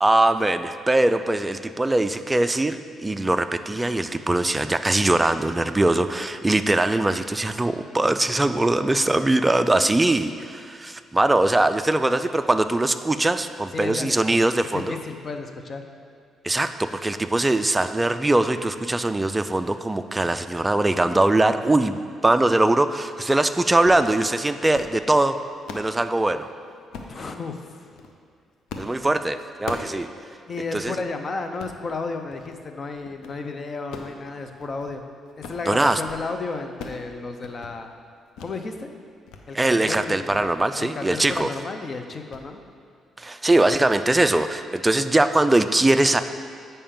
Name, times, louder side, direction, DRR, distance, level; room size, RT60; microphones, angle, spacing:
voice 1, 0.0-15.0 16.4-25.4 25.7-26.5 28.8-30.1 30.7-30.9 35.7-36.0 39.6-41.5 43.2-46.2, right 2 dB, 15° right, 10 dB, 0.3 m, -21 dB
voice 2, 13.7-15.8 27.1-27.9 30.5-35.0 35.4-37.9 38.4-38.9 39.5-40.4 40.8-42.6, left 3 dB, 40° left, 6 dB, 0.6 m, -33 dB
sound 1, 23.8-24.1 24.5-25.0 25.4-25.9 26.9-27.2 27.8-28.1 28.7-29.0 29.3-30.0 30.3-30.4 30.7-30.9 31.4-31.8 32.3-32.6 32.9-33.4 33.8-35.0 35.3-35.7 35.9-36.3 36.5-37.1 37.3-37.7 38.4-38.5 38.9-39.4 39.8-39.9 40.3-40.5 41.3-41.5 41.8-42.0 42.3-42.5, left 4 dB, 85° left, 0.6 m, -39 dB
8.5 x 5.4 x 3.7 m, 2.2 s
cardioid pair, 90°, 0 cm